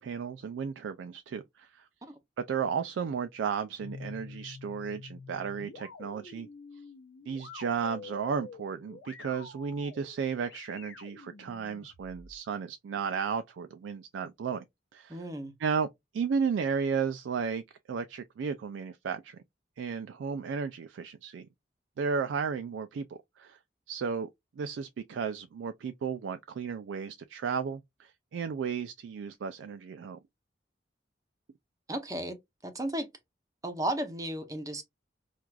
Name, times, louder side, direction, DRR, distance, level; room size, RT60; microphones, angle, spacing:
voice 1, 0.0-1.8 2.5-6.5 7.3-14.7 14.9-15.2 15.6-15.9 16.1-17.6 17.9-19.4 19.8-21.5 22.0-23.6 23.9-24.3 24.6-30.2, right 6 dB, 85° right, 0.3 m, -34 dB
sound 1, 3.8-12.4, left 3 dB, 90° left, 0.8 m, -48 dB
voice 2, 15.1-15.5 31.9-32.4 32.6-33.1 33.6-34.8, right 1 dB, 20° right, 0.7 m, -34 dB
4.5 x 2.4 x 2.3 m
head